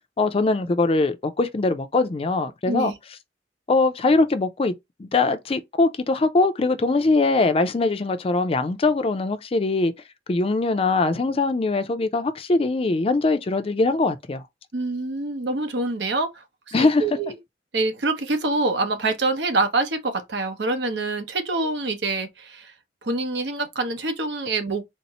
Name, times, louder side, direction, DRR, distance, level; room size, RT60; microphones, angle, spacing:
voice 1, 0.2-2.9 3.7-4.7 5.0-9.9 10.3-14.4 16.7-17.0, left 3 dB, 35° left, 0.4 m, -22 dB
voice 2, 14.7-16.4 16.8-17.4 17.7-22.7 23.0-24.8, right 2 dB, 75° right, 0.9 m, -25 dB
4.1 x 2.0 x 4.1 m
head